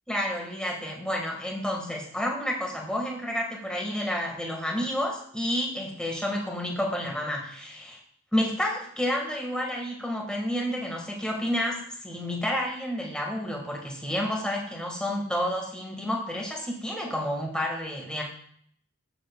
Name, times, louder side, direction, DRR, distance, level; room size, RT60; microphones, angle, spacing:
voice 1, 0.1-8.0 8.3-18.2, equal, 5° left, 0 dB, 1.6 m, -30 dB
15.0 x 7.1 x 2.3 m, 0.63 s
head